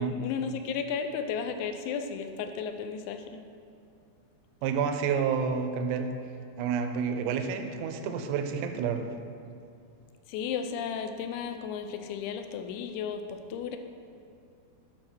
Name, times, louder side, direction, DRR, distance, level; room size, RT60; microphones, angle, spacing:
voice 1, 0.0-3.4 10.3-13.8, left 6 dB, 90° left, 7 dB, 3.0 m, -34 dB
voice 2, 4.6-6.1 6.6-9.1, right 6 dB, 80° right, 7 dB, 2.6 m, -29 dB
10.5 x 4.4 x 6.0 m, 2.6 s
omnidirectional pair, 5.2 m